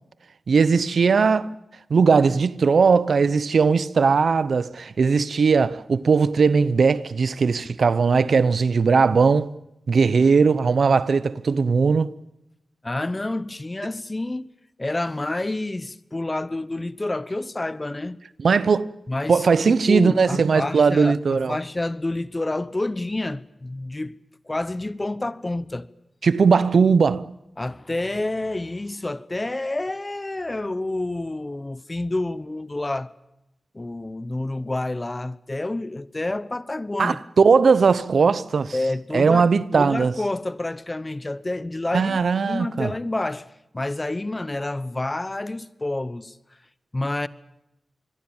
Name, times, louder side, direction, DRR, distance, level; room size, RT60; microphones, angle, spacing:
voice 1, 0.5-1.5 1.9-9.5 9.9-12.1 18.4-18.9 19.3-21.6 26.2-27.2 37.0-38.7 39.1-40.1 41.9-42.9, right 5 dB, 70° right, 0.8 m, -19 dB
voice 2, 12.8-14.5 14.8-18.2 19.1-24.1 24.5-25.9 27.6-33.1 33.7-37.2 38.7-46.4 46.9-47.3, left 2 dB, 25° left, 1.0 m, -29 dB
26.0 x 21.5 x 7.2 m
cardioid pair, 70°, 0 cm